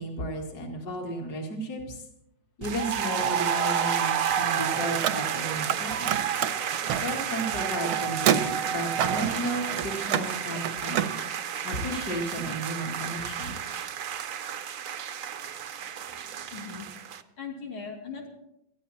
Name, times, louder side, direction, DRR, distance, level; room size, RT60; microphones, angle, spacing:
voice 1, 0.0-2.0 2.6-6.2 7.0-11.2 11.6-13.5, equal, 45° left, 1 dB, 2.8 m, -34 dB
sound 1, 2.6-17.2, right 8 dB, 65° right, 0.8 m, -31 dB
Car, 4.9-5.8 6.0-11.1, right 9 dB, 85° right, 1.7 m, -29 dB
voice 2, 16.1-18.3, left 5 dB, 80° left, 0 dB, 3.3 m, -41 dB
20.0 x 14.0 x 4.3 m, 0.80 s
omnidirectional pair, 2.3 m